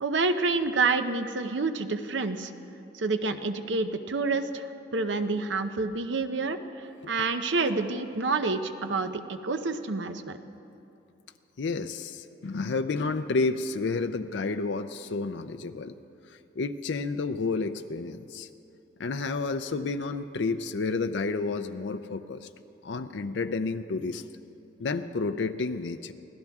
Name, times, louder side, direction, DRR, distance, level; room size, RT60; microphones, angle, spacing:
voice 1, 0.0-2.5 2.9-4.7 4.9-10.4, right 3 dB, 80° right, 8 dB, 0.8 m, -28 dB
voice 2, 11.6-15.9 16.6-18.5 19.0-22.5 22.8-24.2 24.8-26.1, left 3 dB, 75° left, 9 dB, 0.5 m, -30 dB
24.5 x 16.5 x 3.6 m, 2.8 s
head